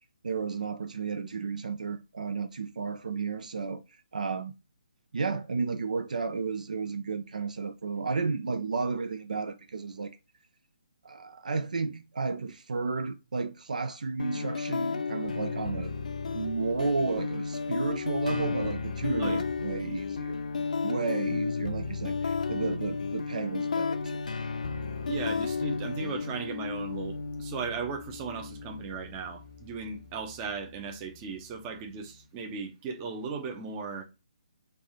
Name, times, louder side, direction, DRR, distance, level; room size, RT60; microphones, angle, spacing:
voice 1, 0.2-3.8 4.1-4.5 5.1-10.2 11.0-15.9 16.3-24.2, right 4 dB, 65° right, 0.4 m, -32 dB
sound 1, 14.2-32.2, left 5 dB, 65° left, 0.5 m, -33 dB
voice 2, 25.1-34.0, right 5 dB, 25° right, 0.8 m, -37 dB
3.4 x 2.6 x 4.2 m
figure-of-eight pair, 140°, 4 cm